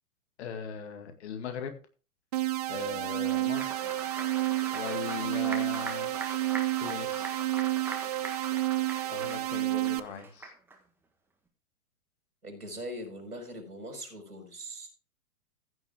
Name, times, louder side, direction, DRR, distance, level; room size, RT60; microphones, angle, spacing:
voice 1, 0.4-1.7 2.7-4.0 4.7-6.1 6.8-7.3 9.1-10.5, left 7 dB, 45° left, 7 dB, 2.1 m, -39 dB
sound 1, 2.3-10.0, right 17 dB, 30° right, 0.5 m, -30 dB
Applause, 3.0-10.8, right 3 dB, 5° right, 1.4 m, -42 dB
voice 2, 12.4-14.9, equal, 85° right, 4 dB, 4.8 m, -41 dB
15.0 x 7.2 x 3.6 m, 0.35 s
figure-of-eight pair, 110°, 44 cm